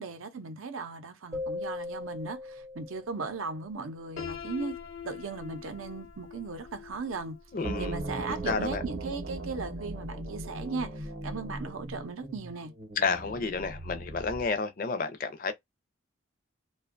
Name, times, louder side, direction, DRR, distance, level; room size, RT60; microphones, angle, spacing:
voice 1, 0.0-4.8 5.0-7.4 7.8-12.7, right 4 dB, 90° right, 0.6 m, -37 dB
sound 1, 1.3-3.6, left 3 dB, 15° right, 0.3 m, -39 dB
Piano, 4.2-10.0, left 7 dB, 75° left, 0.9 m, -44 dB
voice 2, 7.5-7.9 8.5-8.8 13.0-15.5, left 4 dB, 45° left, 0.5 m, -30 dB
sound 2, 7.6-14.6, right 2 dB, 50° right, 0.7 m, -38 dB
2.5 x 2.2 x 2.5 m
head